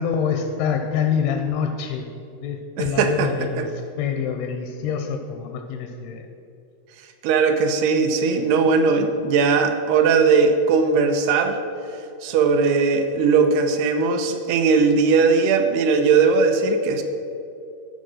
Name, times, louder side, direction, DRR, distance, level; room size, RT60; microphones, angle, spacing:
voice 1, 0.0-2.1 2.4-3.7 4.0-6.3, left 7 dB, 80° left, 5 dB, 2.5 m, -26 dB
voice 2, 2.8-3.3 3.6-3.7 7.2-11.6 12.2-17.0, right 5 dB, 80° right, 6 dB, 2.6 m, -19 dB
12.5 x 4.6 x 6.3 m, 2.7 s
omnidirectional pair, 4.7 m